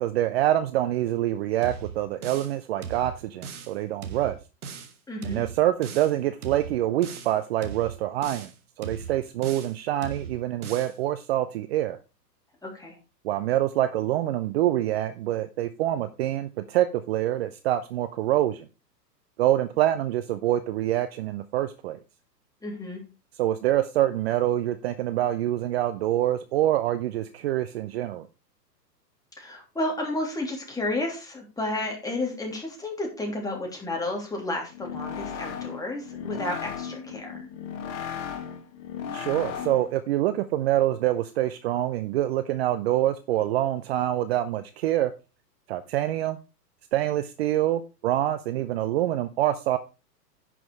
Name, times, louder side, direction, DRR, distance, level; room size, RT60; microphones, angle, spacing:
voice 1, 0.0-4.4 5.2-8.5 8.8-12.0 13.2-18.7 19.4-22.0 23.4-28.3 39.1-45.1 45.7-46.4 46.9-49.8, right 13 dB, 40° right, 11 dB, 0.7 m, -26 dB
sound 1, 1.6-2.6 2.8-3.7 4.0-4.9 5.2-6.1 6.4-7.3 7.6-8.5 8.8-9.8 10.0-10.9, right 6 dB, 60° right, 2.1 m, -38 dB
voice 2, 5.1-5.4 12.6-12.9 22.6-23.0 29.4-37.4, left 2 dB, 5° left, 0 dB, 3.1 m, -32 dB
sound 2, 34.7-40.0, left 7 dB, 30° left, 1.9 m, -36 dB
10.5 x 6.2 x 4.7 m, 0.30 s
figure-of-eight pair, 115°, 50 cm